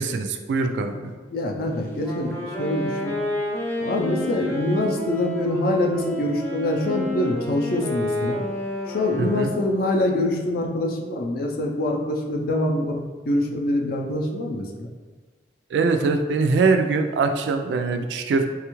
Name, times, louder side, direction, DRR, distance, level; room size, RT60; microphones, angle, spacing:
voice 1, 0.0-1.1 9.2-9.5 15.7-18.5, right 4 dB, 75° right, 6 dB, 0.3 m, -22 dB
voice 2, 0.9-3.2 3.8-8.4 8.9-14.9, left 1 dB, 55° left, 1 dB, 0.4 m, -25 dB
Wind instrument woodwind instrument, 2.0-9.9, left 1 dB, 15° left, 0.6 m, -30 dB
3.3 x 2.3 x 2.9 m, 1.4 s
head